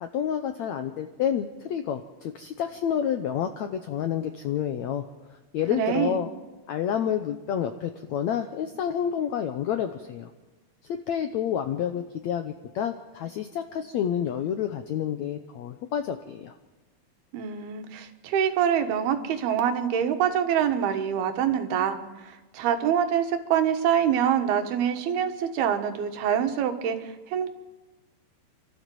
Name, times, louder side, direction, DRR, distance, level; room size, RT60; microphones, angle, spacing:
voice 1, 0.0-5.0 5.5-6.3 6.7-10.3 10.9-16.5, left 9 dB, 80° left, 8 dB, 1.6 m, -29 dB
voice 2, 5.7-6.2 17.3-27.5, right 9 dB, 85° right, 7 dB, 3.3 m, -25 dB
29.0 x 13.0 x 7.7 m, 1.2 s
omnidirectional pair, 4.3 m